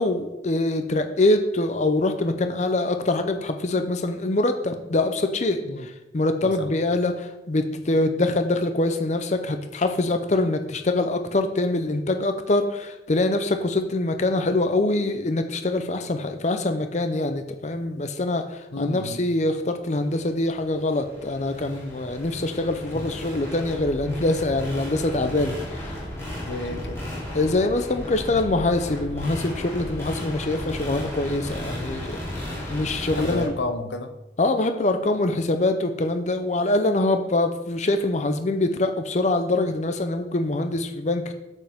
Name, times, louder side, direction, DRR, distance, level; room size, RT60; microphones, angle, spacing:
voice 1, 0.0-25.9 27.3-32.2 32.7-33.5 34.4-41.3, left 2 dB, 40° left, 7 dB, 0.6 m, -24 dB
voice 2, 6.4-6.7 18.7-19.2 22.9-23.1 26.5-27.0 33.1-34.1, left 2 dB, 85° left, 7 dB, 0.9 m, -31 dB
sound 1, 20.1-33.5, left 1 dB, 15° left, 3.5 m, -35 dB
8.7 x 8.2 x 3.6 m, 0.95 s
head